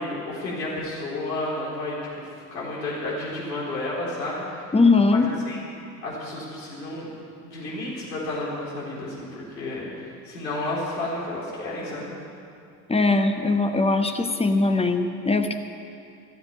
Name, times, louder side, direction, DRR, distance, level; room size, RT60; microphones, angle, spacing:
voice 1, 0.0-4.7 5.1-5.6 6.0-7.1 7.4-12.1, left 2 dB, 85° left, -5 dB, 4.0 m, -31 dB
voice 2, 4.7-5.3 12.9-15.5, left 3 dB, 10° left, 7 dB, 1.1 m, -20 dB
14.0 x 7.7 x 9.2 m, 2.5 s
hypercardioid pair, 70°, 50 cm